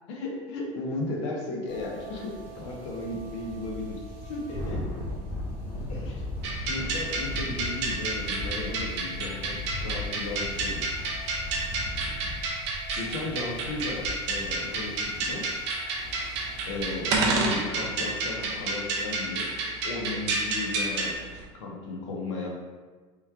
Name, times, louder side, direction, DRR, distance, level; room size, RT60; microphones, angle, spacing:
voice 1, 0.0-5.0 5.9-6.2 6.7-11.0 12.9-15.7 16.6-19.5 19.8-21.3 21.5-22.5, left 2 dB, 70° left, -1 dB, 0.8 m, -35 dB
sound 1, 1.7-17.0, left 1 dB, 30° left, 0.8 m, -38 dB
sound 2, 6.4-21.1, right 3 dB, 65° right, 0.7 m, -31 dB
sound 3, 15.9-21.4, right 3 dB, 20° right, 0.3 m, -33 dB
3.1 x 2.3 x 3.5 m, 1.4 s
supercardioid pair, 175°, 16 cm